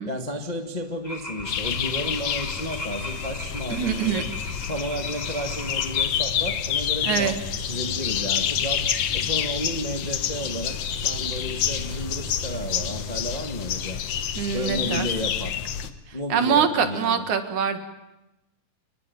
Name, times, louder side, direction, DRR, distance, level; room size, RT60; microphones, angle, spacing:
voice 1, 0.0-4.3 4.6-8.8 9.1-14.0 14.5-15.6 16.1-17.2, equal, 35° left, 5 dB, 0.7 m, -32 dB
sound 1, 1.0-6.1, left 2 dB, 10° left, 3.1 m, -37 dB
sound 2, 1.5-15.9, left 9 dB, 60° left, 1.8 m, -28 dB
voice 2, 3.7-4.2 7.0-7.4 14.4-15.1 16.1-17.8, right 7 dB, 65° right, 8 dB, 3.2 m, -24 dB
sound 3, 7.2-13.0, right 3 dB, 85° right, 4.5 m, -42 dB
28.5 x 21.0 x 9.4 m, 0.95 s
omnidirectional pair, 3.9 m